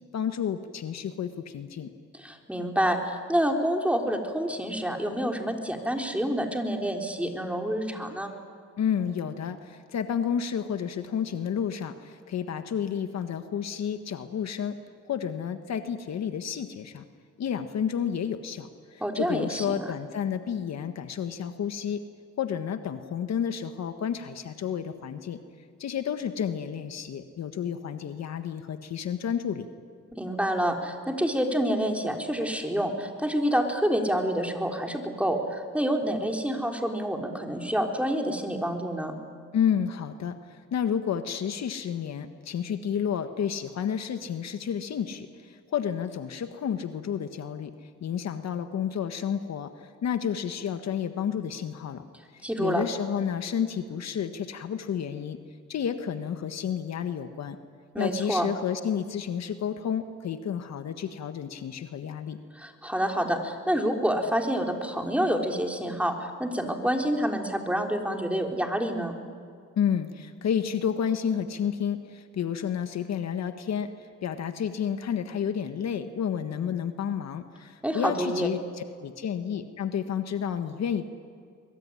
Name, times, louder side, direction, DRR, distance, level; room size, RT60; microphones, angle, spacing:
voice 1, 0.1-1.9 8.8-14.8 15.0-17.0 17.4-22.0 22.4-25.4 25.8-29.7 39.5-52.0 52.3-55.4 55.7-57.6 58.0-62.4 69.8-81.1, left 8 dB, 60° left, 8 dB, 1.6 m, -31 dB
voice 2, 2.2-8.3 19.0-19.9 30.1-39.2 52.4-52.8 57.9-58.5 62.5-69.2 77.8-78.5, equal, 5° right, 3 dB, 3.8 m, -28 dB
23.5 x 22.5 x 10.0 m, 2.1 s
cardioid pair, 90°, 30 cm